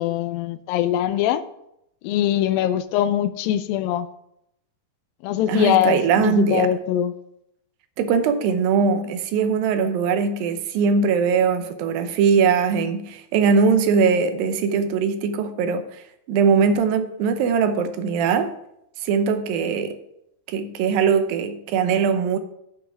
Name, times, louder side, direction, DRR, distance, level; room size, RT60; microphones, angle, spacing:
voice 1, 0.0-1.4 2.0-4.1 5.2-7.1, left 11 dB, 85° left, 2.4 m, -22 dB
voice 2, 5.5-6.7 8.0-16.0 16.3-18.5 19.0-20.0 20.5-22.4, right 6 dB, 80° right, 2.6 m, -21 dB
8.8 x 5.5 x 7.4 m
omnidirectional pair, 4.1 m